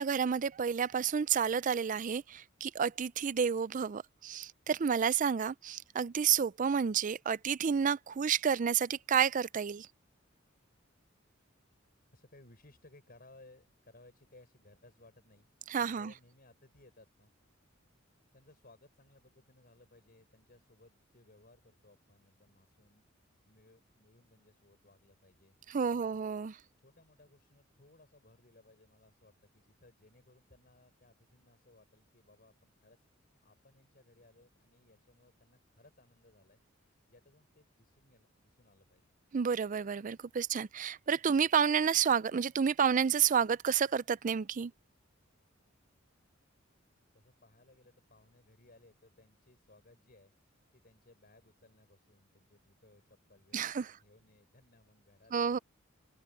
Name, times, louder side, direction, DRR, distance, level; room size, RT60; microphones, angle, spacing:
voice 1, 0.0-9.9 15.7-16.1 25.7-26.5 39.3-44.7 53.5-53.9 55.3-55.6, right 7 dB, 40° right, 0.4 m, -30 dB
voice 2, 12.1-15.5 15.8-17.3 18.3-23.0 23.5-25.6 25.9-26.3 26.8-33.0 33.4-39.1 47.1-55.6, left 2 dB, 50° left, 5.8 m, -62 dB
head